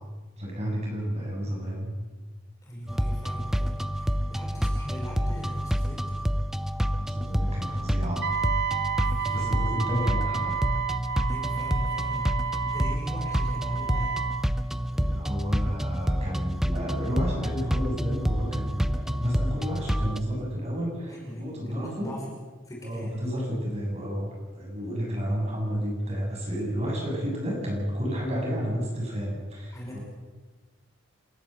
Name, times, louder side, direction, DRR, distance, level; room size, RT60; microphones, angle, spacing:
voice 1, 0.4-1.9 7.0-8.3 9.3-10.6 14.9-22.1 22.8-30.0, equal, 30° right, -2 dB, 8.0 m, -31 dB
voice 2, 2.6-6.1 9.0-10.0 11.3-14.2 21.1-22.3 22.7-23.2 28.3-28.6 29.7-30.0, equal, 15° left, -2 dB, 5.2 m, -40 dB
sound 1, 2.9-20.2, equal, ahead, 0.6 m, -28 dB
Wind instrument woodwind instrument, 8.2-14.5, right 7 dB, 55° right, 1.1 m, -31 dB
28.0 x 13.5 x 8.2 m, 1.3 s
head